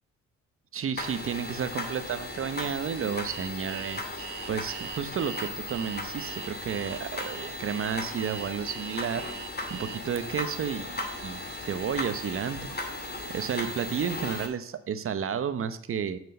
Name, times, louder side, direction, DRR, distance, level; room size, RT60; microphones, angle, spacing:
voice 1, 0.7-9.2 9.7-12.6 13.3-16.2, right 7 dB, 45° right, 12 dB, 0.9 m, -32 dB
sound 1, 1.0-14.5, left 2 dB, 35° left, 2.0 m, -37 dB
Alarm, 3.3-10.2, right 12 dB, 85° right, 0.8 m, -42 dB
6.9 x 6.2 x 6.4 m, 0.73 s
cardioid pair, 90°, 30 cm